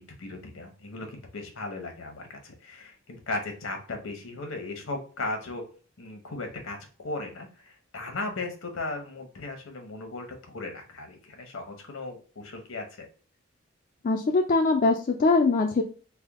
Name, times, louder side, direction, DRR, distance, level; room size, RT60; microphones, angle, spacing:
voice 1, 0.0-5.7 6.0-13.1, left 2 dB, 80° left, 4 dB, 0.9 m, -37 dB
voice 2, 14.0-15.8, left 3 dB, 40° left, 2 dB, 0.3 m, -22 dB
3.4 x 2.2 x 3.4 m, 0.39 s
head